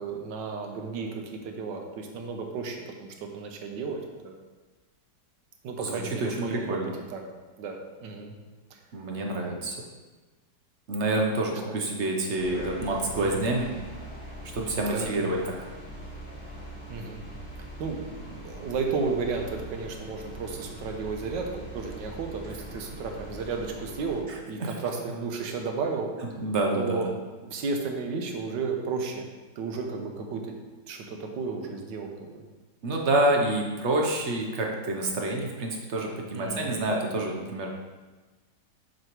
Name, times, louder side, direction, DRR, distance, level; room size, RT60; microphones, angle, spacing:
voice 1, 0.0-4.4 5.6-6.8 7.1-7.2 7.6-8.4 8.7-8.8 11.4-11.8 13.1-13.4 14.8-15.4 16.9-17.2 17.8-26.1 26.7-27.1 27.4-29.3 29.5-30.5 30.9-32.4 36.3-36.8, right 4 dB, 80° right, 3 dB, 1.5 m, -33 dB
voice 2, 5.8-6.9 8.9-9.8 10.9-13.7 14.5-15.4 24.6-24.7 26.4-27.1 32.8-37.7, right 2 dB, 50° right, 0 dB, 0.9 m, -27 dB
sound 1, 12.4-24.2, right 1 dB, 75° left, 2.9 m, -42 dB
6.7 x 6.4 x 3.0 m, 1.3 s
omnidirectional pair, 1.9 m